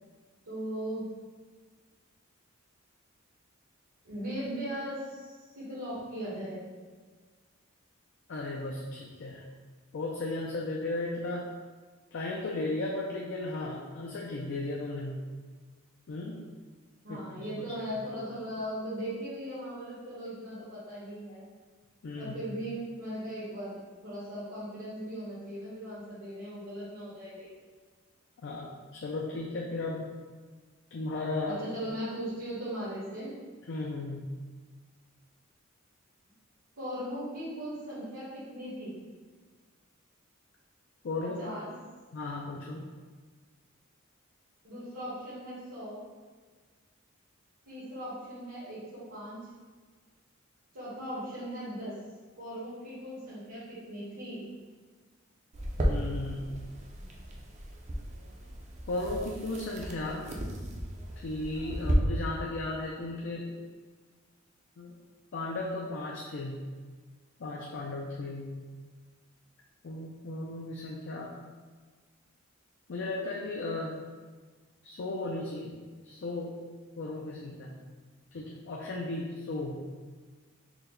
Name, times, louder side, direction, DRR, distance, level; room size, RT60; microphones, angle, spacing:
voice 1, 0.4-1.1 4.0-6.6 17.0-21.4 22.2-23.8 24.0-27.5 31.4-33.3 36.8-38.9 41.2-41.7 44.6-46.1 47.7-49.5 50.7-51.9 52.4-54.4, equal, 75° right, -10 dB, 1.3 m, -38 dB
voice 2, 8.3-9.4 9.9-11.5 12.1-15.2 16.1-16.4 17.1-17.7 22.0-22.4 28.4-30.1 30.9-31.6 33.7-34.2 41.0-41.4 42.1-42.8 55.8-56.5 58.9-60.3 61.2-63.5 64.8-64.9 65.3-66.6 67.4-68.5 69.8-71.3 72.9-74.0 74.8-75.7 76.0-76.6 77.0-77.8 78.3-79.8, left 2 dB, 60° left, -2 dB, 0.4 m, -35 dB
sound 1, 55.5-61.9, right 1 dB, 35° right, 0.5 m, -35 dB
4.4 x 2.1 x 3.8 m, 1.5 s
head